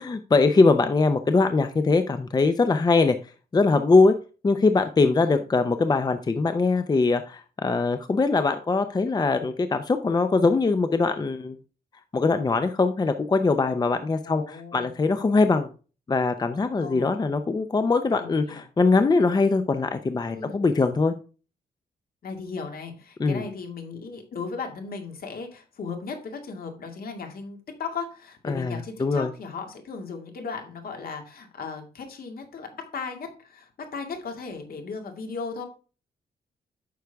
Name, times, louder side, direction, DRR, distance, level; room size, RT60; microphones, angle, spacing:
voice 1, 0.0-3.2 3.5-4.2 4.4-11.6 12.1-15.7 16.1-21.1 23.2-23.4 28.5-29.3, left 3 dB, 25° left, 9 dB, 0.6 m, -22 dB
voice 2, 14.2-14.9 16.8-17.1 18.2-18.6 20.2-20.7 22.2-35.7, left 5 dB, 60° left, 4 dB, 2.2 m, -36 dB
9.4 x 6.4 x 3.5 m, 0.35 s
wide cardioid pair, 125°, 17 cm